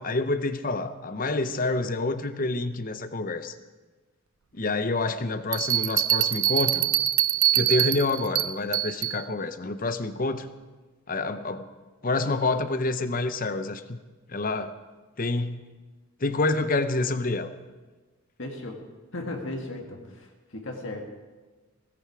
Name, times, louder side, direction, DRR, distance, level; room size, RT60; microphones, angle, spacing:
voice 1, 0.0-3.5 4.5-6.9 7.5-10.5 11.1-11.7 12.0-14.0 14.3-14.7 15.2-15.6 16.2-17.5, left 2 dB, 40° left, 11 dB, 0.8 m, -27 dB
Bell, 5.5-9.2, right 13 dB, 70° right, 0.6 m, -24 dB
voice 2, 18.4-18.8 19.1-21.0, left 2 dB, 60° left, 2 dB, 2.1 m, -36 dB
17.0 x 16.0 x 4.8 m, 1.3 s
head